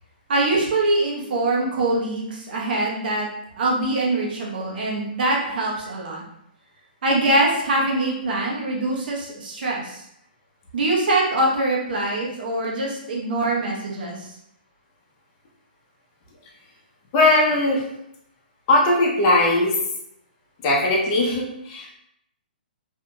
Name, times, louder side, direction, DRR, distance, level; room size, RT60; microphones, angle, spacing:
voice 1, 0.3-3.3 3.6-6.2 7.0-10.0 10.7-14.3, right 2 dB, 60° right, -3 dB, 0.9 m, -23 dB
voice 2, 17.1-17.9 18.7-19.8 20.6-21.9, left 2 dB, 35° left, -2 dB, 0.7 m, -19 dB
2.8 x 2.7 x 2.2 m, 0.76 s
hypercardioid pair, 145°, 5 cm